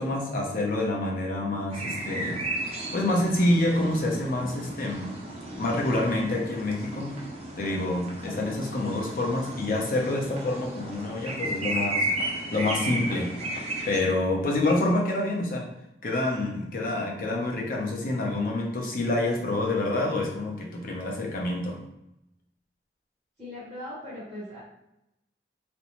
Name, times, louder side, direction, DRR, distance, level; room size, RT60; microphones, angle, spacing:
voice 1, 0.0-5.2 5.6-7.2 7.6-13.4 13.9-15.7 16.0-21.8, left 2 dB, 50° left, -1 dB, 0.6 m, -27 dB
sound 1, 1.7-14.0, right 1 dB, 35° right, 0.5 m, -34 dB
voice 2, 23.4-24.6, left 1 dB, ahead, -14 dB, 1.2 m, -39 dB
2.5 x 2.1 x 2.9 m, 0.86 s
head